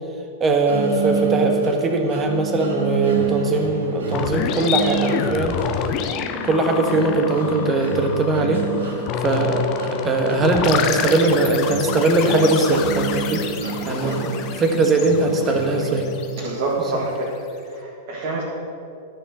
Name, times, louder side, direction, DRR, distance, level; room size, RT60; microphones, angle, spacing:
voice 1, 0.4-5.6 6.4-13.4 13.9-14.3 14.6-16.1 16.9-17.0, right 2 dB, 25° right, 3 dB, 1.4 m, -20 dB
sound 1, 0.7-16.6, right 5 dB, 75° right, 1.6 m, -30 dB
sound 2, 4.1-16.8, left 7 dB, 40° left, 0.8 m, -28 dB
voice 2, 13.8-14.2 16.4-17.4 17.6-18.4, right 2 dB, 55° right, -4 dB, 1.8 m, -27 dB
12.5 x 5.6 x 6.3 m, 2.8 s
figure-of-eight pair, 100°, 0 cm